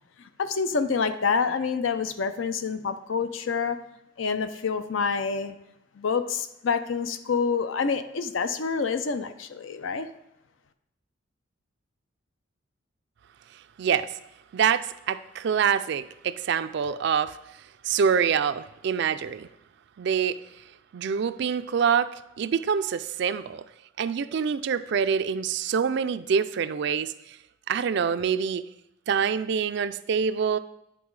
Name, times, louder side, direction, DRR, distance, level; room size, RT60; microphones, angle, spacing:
voice 1, 0.4-3.8 4.2-5.5 6.0-10.1, left 5 dB, 75° left, 10 dB, 0.6 m, -27 dB
voice 2, 13.8-14.2 14.5-17.4 17.8-19.5 20.0-20.4 20.9-23.6 24.0-27.4 27.7-28.7 29.1-30.6, right 7 dB, 60° right, 13 dB, 0.3 m, -26 dB
9.3 x 4.0 x 4.7 m, 0.86 s
head